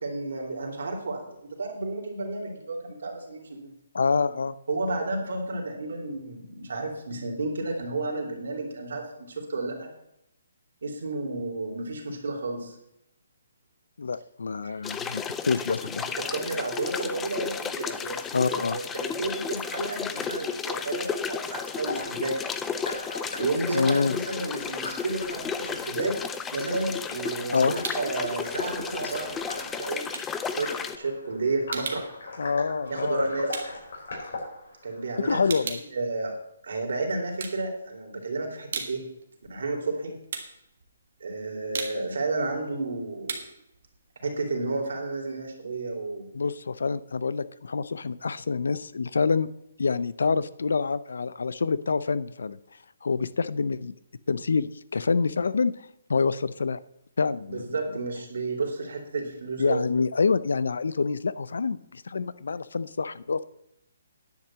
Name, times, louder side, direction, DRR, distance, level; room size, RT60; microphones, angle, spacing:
voice 1, 0.0-3.7 4.7-9.9 10.8-12.7 14.6-14.8 16.0-22.4 23.4-26.1 26.5-30.0 30.6-30.7 31.0-32.1 32.8-33.5 34.8-35.4 35.9-36.3 36.6-39.0 39.5-40.1 41.2-43.4 44.2-46.3 57.5-59.8, right 3 dB, 70° right, 2 dB, 3.2 m, -31 dB
voice 2, 3.9-4.6 14.0-16.0 18.3-18.8 23.7-24.1 27.5-27.7 32.4-33.3 35.3-35.8 46.3-49.5 49.8-52.6 53.0-53.9 54.3-56.8 57.2-57.6 59.6-63.4, left 4 dB, 85° left, 17 dB, 0.5 m, -26 dB
sound 1, 14.8-31.0, left 6 dB, 10° left, 0.4 m, -33 dB
sound 2, 21.8-35.6, left 2 dB, 60° left, 4.6 m, -40 dB
sound 3, 27.8-28.2 28.5-34.8 35.1-36.9 37.2-38.1 38.5-45.2, right 5 dB, 50° right, 1.7 m, -39 dB
10.5 x 5.8 x 7.6 m, 0.82 s
hypercardioid pair, 175°, 0 cm